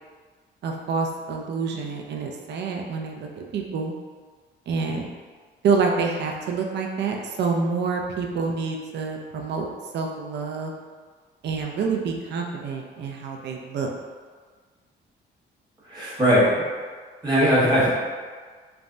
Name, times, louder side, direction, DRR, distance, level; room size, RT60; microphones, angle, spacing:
voice 1, 0.6-3.9 4.7-5.1 5.6-9.7 9.9-10.7 11.4-13.9, right 5 dB, 60° right, 1 dB, 0.4 m, -27 dB
voice 2, 15.8-16.7 17.2-17.9, equal, 20° right, -9 dB, 1.1 m, -19 dB
3.3 x 2.1 x 2.5 m, 1.5 s
cardioid pair, 90°, 20 cm